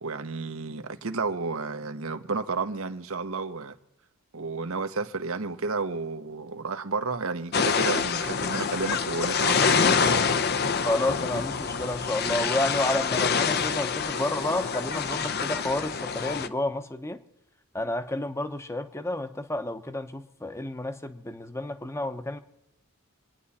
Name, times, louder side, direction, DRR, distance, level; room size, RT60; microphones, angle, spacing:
voice 1, 0.0-3.7 4.3-10.4, right 4 dB, 80° right, 1.0 m, -32 dB
sound 1, 7.5-16.5, left 6 dB, 50° left, 0.6 m, -26 dB
voice 2, 10.8-17.2 17.7-22.4, left 1 dB, 15° left, 0.8 m, -30 dB
26.5 x 9.9 x 4.2 m
head